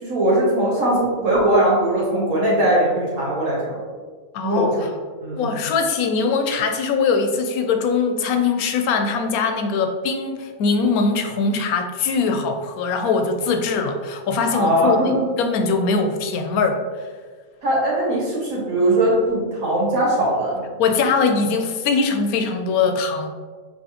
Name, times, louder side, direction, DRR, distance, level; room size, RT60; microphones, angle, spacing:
voice 1, 0.0-3.8 4.4-4.7 5.2-5.5 14.5-15.2 17.6-20.6, right 1 dB, 75° right, -5 dB, 1.7 m, -20 dB
voice 2, 4.3-4.8 5.4-16.8 20.8-23.3, left 4 dB, 90° left, 6 dB, 1.0 m, -21 dB
5.6 x 2.8 x 2.9 m, 1.5 s
omnidirectional pair, 1.5 m